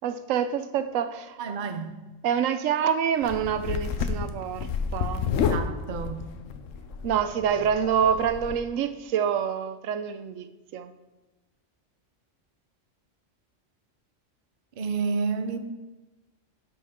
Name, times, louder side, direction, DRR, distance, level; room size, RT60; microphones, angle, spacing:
voice 1, 0.0-1.4 2.2-5.3 7.0-10.5 10.7-10.9, right 8 dB, 85° right, 10 dB, 1.0 m, -26 dB
voice 2, 1.4-2.0 5.5-6.3 14.8-15.6, right 5 dB, 45° right, 8 dB, 0.7 m, -30 dB
sound 1, 3.2-8.6, left 6 dB, 80° left, 1.0 m, -30 dB
11.5 x 6.3 x 3.6 m, 1.1 s
omnidirectional pair, 1.3 m